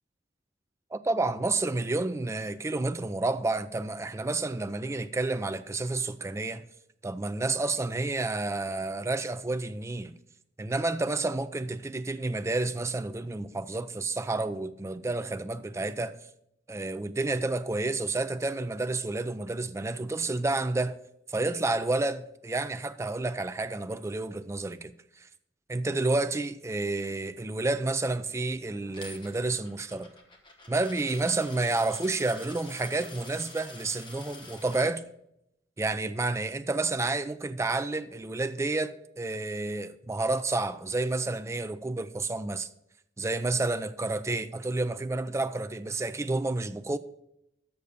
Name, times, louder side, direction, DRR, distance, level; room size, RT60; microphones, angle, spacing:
voice 1, 0.9-6.6 7.0-10.1 10.6-16.2 16.7-21.0 21.3-24.9 25.7-30.1 30.7-35.0 35.8-42.7 43.2-47.0, right 2 dB, 15° right, 0.4 m, -30 dB
Coin (dropping), 28.9-34.9, left 3 dB, 25° left, 1.2 m, -47 dB
6.7 x 6.7 x 6.9 m
head